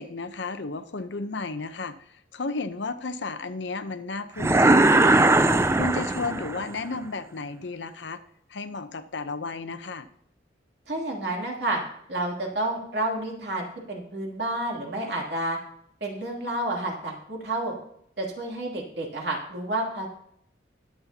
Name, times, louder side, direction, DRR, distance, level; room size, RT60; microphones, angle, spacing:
voice 1, 0.0-5.3 5.7-8.2 8.5-10.1, left 3 dB, 70° left, 10 dB, 0.8 m, -33 dB
sound 1, 4.4-6.7, right 2 dB, 15° right, 0.3 m, -19 dB
voice 2, 10.9-11.8 12.1-15.6 16.0-17.7 18.2-20.1, right 1 dB, 60° right, -1 dB, 2.8 m, -30 dB
21.0 x 7.5 x 2.9 m, 0.69 s
head